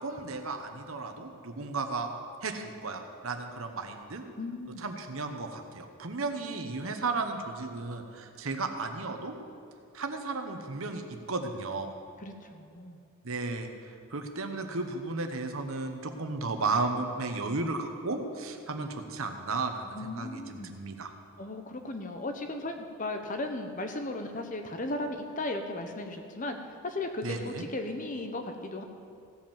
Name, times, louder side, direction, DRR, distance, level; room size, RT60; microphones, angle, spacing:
voice 1, 0.0-2.1 2.4-4.2 4.8-9.3 9.9-11.9 13.2-21.1 27.2-27.7, right 3 dB, 70° right, 5 dB, 1.0 m, -34 dB
voice 2, 4.4-4.8 12.2-13.0 19.9-20.8 21.4-26.6 26.8-28.8, left 2 dB, 35° left, 5 dB, 0.9 m, -36 dB
16.0 x 5.4 x 7.2 m, 2.5 s
head